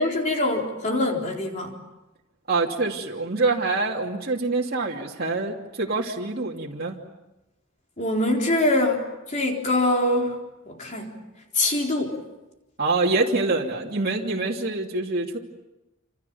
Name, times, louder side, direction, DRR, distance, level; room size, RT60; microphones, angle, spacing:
voice 1, 0.0-1.8 8.0-10.4 10.7-11.2 11.5-12.2, left 1 dB, 35° left, 1 dB, 4.0 m, -24 dB
voice 2, 2.5-7.0 12.8-15.4, right 3 dB, 50° right, -3 dB, 2.9 m, -25 dB
28.0 x 28.0 x 7.2 m, 1.0 s
head